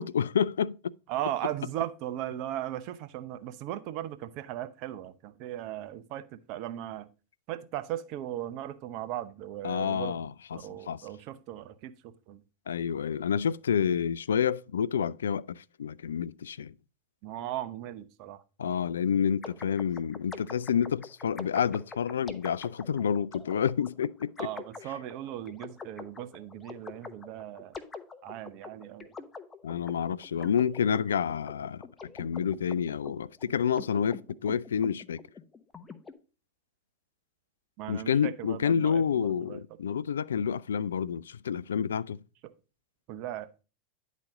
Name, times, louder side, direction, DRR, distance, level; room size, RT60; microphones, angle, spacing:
voice 1, 0.0-0.9 9.6-10.6 10.9-11.0 12.7-16.7 18.6-24.5 29.6-35.2 37.9-42.2, left 7 dB, 80° left, 0.3 m, -29 dB
voice 2, 1.1-7.1 7.5-10.2 10.5-12.4 17.2-18.4 24.4-27.7 28.2-29.1 37.8-39.6 42.4-42.5 43.1-43.5, right 12 dB, 55° right, 0.8 m, -37 dB
sound 1, 19.4-36.1, left 4 dB, 20° left, 0.9 m, -45 dB
10.5 x 4.1 x 4.8 m
hypercardioid pair, 90°, 0 cm